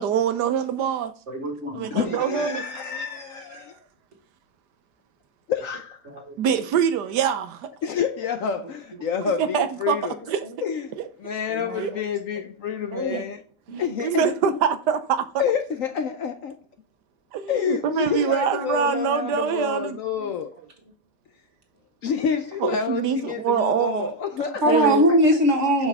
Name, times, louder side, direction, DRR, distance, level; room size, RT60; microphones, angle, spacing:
voice 1, 0.0-1.1 1.7-2.8 3.5-3.6 6.4-7.7 9.2-10.0 10.3-10.4 11.8-11.9 13.1-13.2 13.7-15.2 17.3-20.0 22.6-24.1 24.7-25.0, right 8 dB, 75° right, 1.3 m, -24 dB
voice 2, 1.3-2.4 6.3-6.4 11.5-11.8 12.9-13.2 13.7-13.8 24.6-25.9, equal, 45° right, 1.8 m, -22 dB
voice 3, 1.9-3.8 5.5-6.0 7.8-10.2 10.6-13.4 13.8-14.6 15.4-16.6 17.5-20.5 22.0-25.2, left 7 dB, 65° left, 0.9 m, -28 dB
6.9 x 5.3 x 3.5 m
omnidirectional pair, 1.8 m